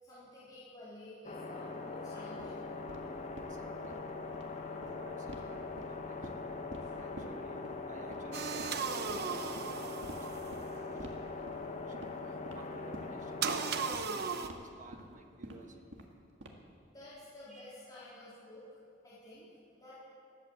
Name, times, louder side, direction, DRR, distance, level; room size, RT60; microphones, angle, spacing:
voice 1, 0.0-2.7 6.8-6.9 16.9-18.6 19.0-19.5 19.8-20.0, left 1 dB, 20° left, -11 dB, 3.9 m, -51 dB
sound 1, 1.2-13.9, left 3 dB, 40° left, 1.5 m, -42 dB
sound 2, 2.4-2.5 2.9-3.0 3.4-3.5 3.8-4.0 4.2-4.4 4.8-4.9 5.3-5.4 5.8-6.4 6.7-6.8 7.2-7.3 7.6-7.7 8.1-8.3 8.6-8.7 9.1-9.2 9.6-9.7 10.0-10.2 10.5-10.6 11.0-11.2 11.5-11.6 11.9-12.1 12.5-12.6 12.9-13.1 13.4-13.5 13.9-14.0 14.4-14.6 14.9-15.0 15.4-15.5 15.9-16.1 16.4-16.7, right 1 dB, 80° right, 1.8 m, -47 dB
voice 2, 3.5-4.0 4.7-6.2 7.0-12.1 12.5-13.4 14.1-15.8 17.5-17.7, right 2 dB, 45° right, 4 dB, 1.3 m, -55 dB
sound 3, 8.3-10.8 13.4-14.5, right 6 dB, 60° right, 0.8 m, -36 dB
18.5 x 8.7 x 7.9 m, 2.5 s
head